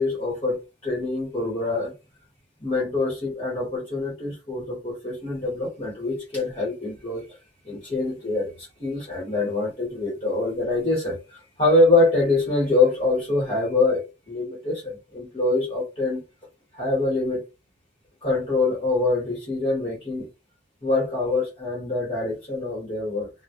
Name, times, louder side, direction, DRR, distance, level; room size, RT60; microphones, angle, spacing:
voice 1, 0.0-1.9 2.6-7.4 7.6-16.2 16.7-17.4 18.2-20.3 20.8-23.3, left 2 dB, 30° left, 0.9 m, -25 dB
2.2 x 2.1 x 2.7 m
head